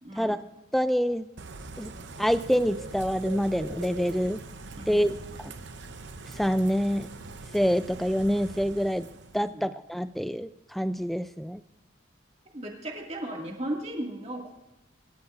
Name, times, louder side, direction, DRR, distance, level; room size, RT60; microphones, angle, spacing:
voice 1, 0.0-0.4 4.8-5.2 9.4-9.6 12.5-14.5, right 1 dB, 35° right, 0 dB, 2.1 m, -36 dB
voice 2, 0.7-1.3 1.8-1.9 2.2-4.4 4.9-5.1 5.4-5.5 6.4-7.1 7.5-9.1 9.3-11.6, equal, ahead, 13 dB, 0.3 m, -26 dB
Bird / Rain, 1.4-9.5, right 3 dB, 65° right, 0.8 m, -42 dB
26.0 x 12.5 x 2.5 m, 1.0 s
head